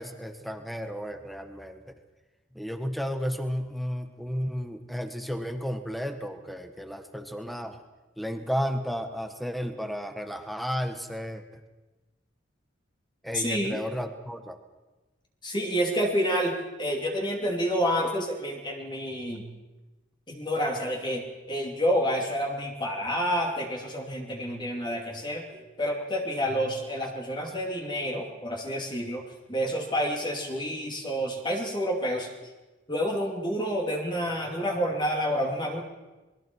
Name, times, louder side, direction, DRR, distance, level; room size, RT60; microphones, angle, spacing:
voice 1, 0.0-1.9 2.5-7.8 8.2-11.6 13.2-14.6, equal, ahead, 7 dB, 1.2 m, -33 dB
voice 2, 13.3-13.8 15.4-19.4 20.3-29.2 29.5-32.5 32.9-35.8, equal, 25° left, 0 dB, 2.7 m, -29 dB
27.0 x 21.5 x 4.6 m, 1.2 s
head